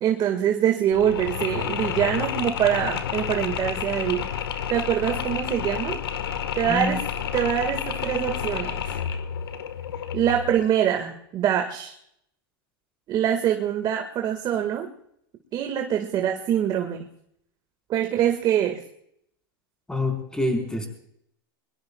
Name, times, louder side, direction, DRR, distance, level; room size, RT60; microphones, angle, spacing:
voice 1, 0.0-4.3 4.7-6.0 6.6-7.0 7.3-8.8 10.1-11.9 13.1-14.9 15.5-17.1 17.9-18.8, right 10 dB, 35° right, 5 dB, 1.8 m, -24 dB
Mechanisms, 0.9-10.7, left 8 dB, 85° left, 1.5 m, -30 dB
voice 2, 6.7-7.0 19.9-20.9, left 2 dB, 5° left, 3 dB, 4.5 m, -26 dB
23.0 x 22.0 x 2.3 m, 0.74 s
hypercardioid pair, 120°, 12 cm